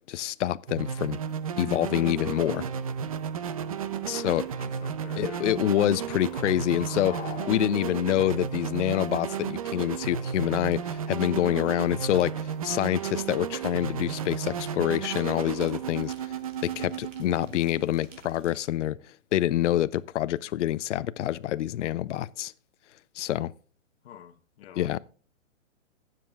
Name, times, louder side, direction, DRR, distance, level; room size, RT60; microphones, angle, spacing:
voice 1, 0.1-1.2 1.6-2.7 4.0-4.5 5.2-16.3 16.6-19.0 19.3-22.5 23.2-23.5 24.8-25.0, left 13 dB, 70° left, 0.5 m, -27 dB
sound 1, 0.7-18.4, right 8 dB, 30° right, 0.4 m, -33 dB
voice 2, 3.9-5.6 24.0-25.0, left 10 dB, 50° left, 1.1 m, -49 dB
sound 2, 5.7-9.5, left 8 dB, 20° left, 1.4 m, -45 dB
sound 3, 10.7-18.7, right 4 dB, 70° right, 2.7 m, -54 dB
21.0 x 7.6 x 2.3 m
hypercardioid pair, 150°, 38 cm